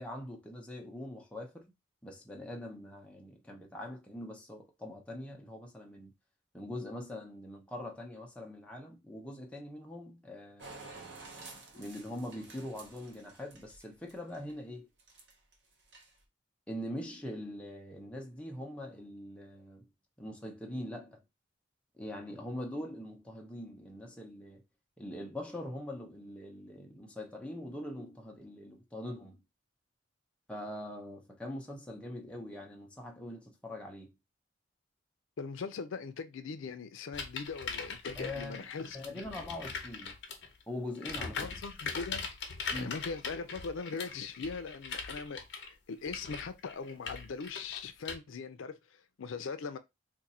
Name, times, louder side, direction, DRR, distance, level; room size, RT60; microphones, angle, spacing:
voice 1, 0.0-1.7 2.0-6.1 6.5-11.2 11.8-14.9 16.7-19.9 20.2-21.2 22.0-24.6 25.0-29.4 30.5-34.1 38.2-38.7 38.9-40.2 40.7-41.5 42.7-43.0, left 1 dB, 5° left, 0.7 m, -43 dB
sound 1, 10.6-14.5 15.0-15.5 15.8-16.2, right 3 dB, 60° right, 0.9 m, -51 dB
voice 2, 35.4-39.3 41.4-42.3 42.7-49.8, left 5 dB, 85° left, 0.4 m, -40 dB
sound 2, 37.1-40.5 40.9-48.1, left 5 dB, 65° left, 0.8 m, -41 dB
2.6 x 2.5 x 4.1 m
head